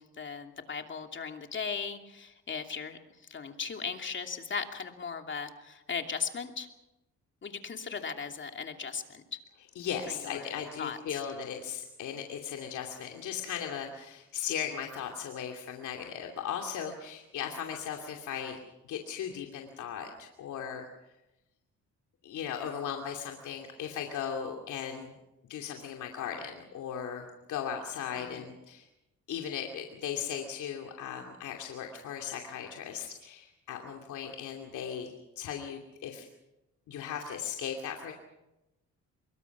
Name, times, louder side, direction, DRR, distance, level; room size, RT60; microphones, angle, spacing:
voice 1, 0.0-6.7 7.4-9.4 10.1-10.5 10.8-11.2 28.1-28.5, left 6 dB, 40° left, 5 dB, 2.8 m, -38 dB
voice 2, 9.8-18.6 18.9-20.9 22.2-25.1 25.5-28.9 29.3-36.3 36.9-38.1, left 8 dB, 80° left, 2 dB, 2.7 m, -37 dB
24.5 x 22.5 x 6.0 m, 0.93 s
cardioid pair, 90°, 30 cm